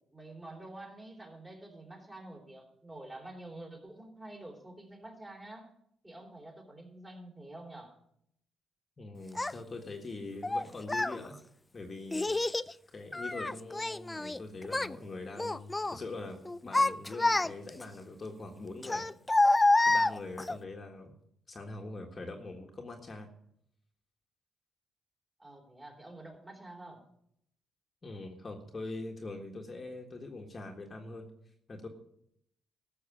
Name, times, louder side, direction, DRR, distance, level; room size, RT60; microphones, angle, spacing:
voice 1, 0.1-5.7 6.0-8.0 25.4-27.0, right 2 dB, 20° right, 1 dB, 3.6 m, -48 dB
voice 2, 9.0-11.3 11.7-12.3 12.9-19.0 19.9-21.2 21.5-23.3 28.0-31.3 31.7-31.9, left 2 dB, 35° left, 2 dB, 1.6 m, -43 dB
Child speech kid speaking, 9.4-9.5 10.4-11.2 12.1-12.7 13.1-14.4 14.6-15.0 15.4-16.0 16.5-17.8 18.8-20.6, left 2 dB, 15° left, 0.4 m, -28 dB
13.0 x 6.5 x 8.6 m, 0.74 s
cardioid pair, 90°, 0 cm